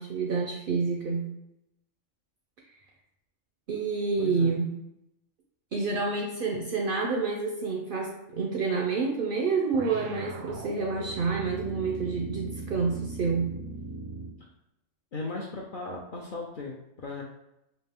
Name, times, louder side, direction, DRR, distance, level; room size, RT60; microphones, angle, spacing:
voice 1, 0.0-1.3 3.7-4.7 5.7-13.5, right 4 dB, 60° right, 0 dB, 0.6 m, -28 dB
voice 2, 4.2-4.5 15.1-17.2, left 3 dB, 55° left, -1 dB, 0.6 m, -37 dB
sound 1, 9.7-14.5, right 3 dB, 80° right, 1.0 m, -39 dB
4.2 x 2.5 x 3.4 m, 0.85 s
omnidirectional pair, 1.3 m